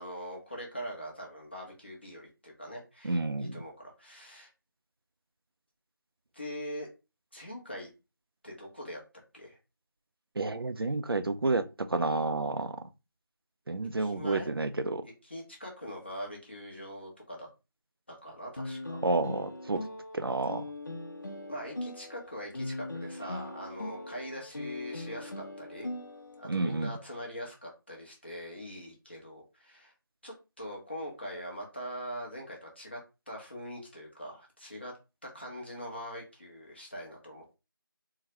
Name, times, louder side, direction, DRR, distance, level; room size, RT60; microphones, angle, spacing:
voice 1, 0.0-4.5 6.3-6.9 7.3-7.9 8.4-9.0 9.3-9.6 14.0-14.5 15.2-17.5 18.1-19.0 21.5-25.9 26.4-29.9 30.2-33.0 33.3-34.9 35.2-37.6, equal, 30° left, 0.9 m, -42 dB
voice 2, 3.0-3.6 10.4-12.8 13.7-15.1 19.0-19.8 20.1-20.6 26.5-26.9, right 3 dB, 90° right, 0.5 m, -30 dB
sound 1, 18.6-26.7, left 1 dB, 55° left, 0.8 m, -40 dB
3.8 x 2.2 x 2.9 m
figure-of-eight pair, 175°, 12 cm